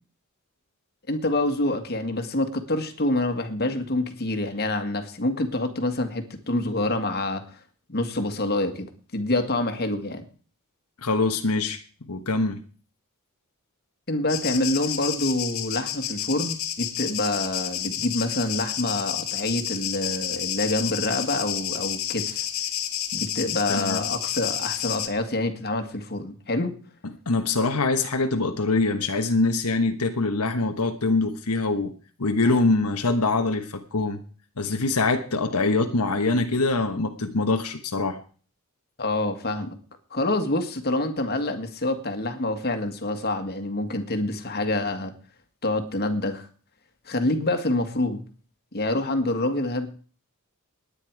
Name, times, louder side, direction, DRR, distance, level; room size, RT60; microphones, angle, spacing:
voice 1, 1.1-7.6 7.9-10.3 14.1-22.5 23.1-26.8 39.0-39.8 40.1-45.1 45.6-46.5 47.1-48.2 48.7-49.9, left 2 dB, 45° left, 6 dB, 2.0 m, -27 dB
voice 2, 11.0-11.8 12.1-12.6 23.7-24.0 27.0-31.9 32.2-34.2 34.6-38.2, left 3 dB, 90° left, 6 dB, 1.3 m, -24 dB
sound 1, 14.3-25.1, left 11 dB, 65° left, 1.9 m, -30 dB
19.0 x 9.9 x 4.8 m, 0.41 s
head